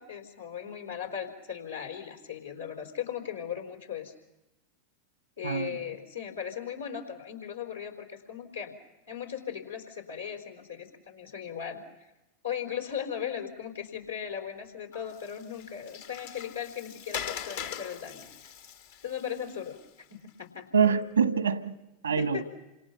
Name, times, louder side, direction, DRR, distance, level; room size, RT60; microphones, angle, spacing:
voice 1, 0.0-4.1 5.4-8.8 9.1-12.1 12.4-18.5 19.0-19.8 20.1-20.7 22.2-22.4, left 8 dB, 85° left, 4.0 m, -38 dB
voice 2, 5.4-5.8 20.7-21.8 22.0-22.4, right 6 dB, 85° right, 1.5 m, -25 dB
Water, 14.9-20.3, left 9 dB, 65° left, 1.6 m, -42 dB
28.5 x 26.0 x 5.9 m
figure-of-eight pair, 90°, 0 cm